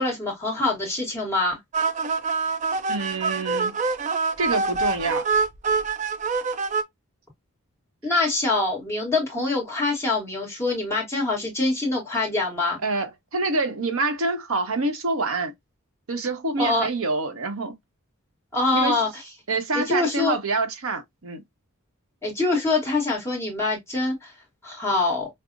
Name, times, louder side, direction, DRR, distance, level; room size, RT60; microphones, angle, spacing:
voice 1, 0.0-1.6 8.0-12.8 16.6-16.9 18.5-19.1 19.7-20.3 22.2-24.3 24.6-25.3, left 3 dB, 10° left, 1.1 m, -24 dB
sound 1, 1.7-6.8, right 4 dB, 30° right, 0.4 m, -25 dB
voice 2, 2.9-3.8 4.4-5.3 12.8-15.5 16.1-17.8 18.7-19.0 19.5-21.4, right 3 dB, 65° right, 0.9 m, -26 dB
5.3 x 2.0 x 2.5 m
head